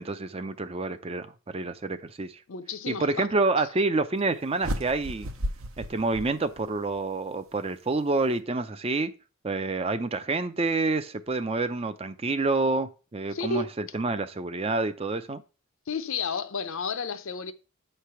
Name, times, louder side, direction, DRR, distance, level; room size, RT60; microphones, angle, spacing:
voice 1, 0.0-2.4 2.9-5.3 5.8-9.1 9.4-15.4, right 3 dB, 25° right, 0.4 m, -28 dB
voice 2, 2.5-3.3 13.3-13.7 15.9-17.5, left 4 dB, 60° left, 0.6 m, -31 dB
sound 1, 4.6-7.0, equal, 65° right, 0.9 m, -34 dB
9.0 x 3.3 x 5.7 m
head